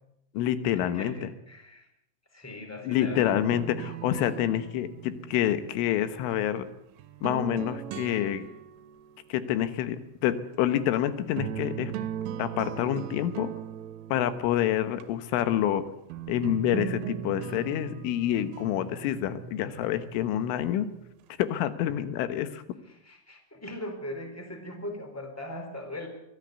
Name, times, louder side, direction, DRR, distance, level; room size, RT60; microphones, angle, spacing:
voice 1, 0.4-1.3 2.9-6.7 7.2-8.5 9.3-11.9 12.4-13.5 14.1-15.8 16.3-20.9 21.4-22.6, left 11 dB, 90° left, 11 dB, 3.7 m, -27 dB
voice 2, 0.9-1.9 2.3-3.4 22.8-26.1, left 1 dB, 5° left, 5 dB, 3.4 m, -39 dB
sound 1, 3.1-6.4 7.0-9.2 10.9-11.0 11.4-15.0 16.1-21.1, right 10 dB, 85° right, 3.5 m, -39 dB
23.5 x 16.0 x 8.2 m, 0.80 s
omnidirectional pair, 5.5 m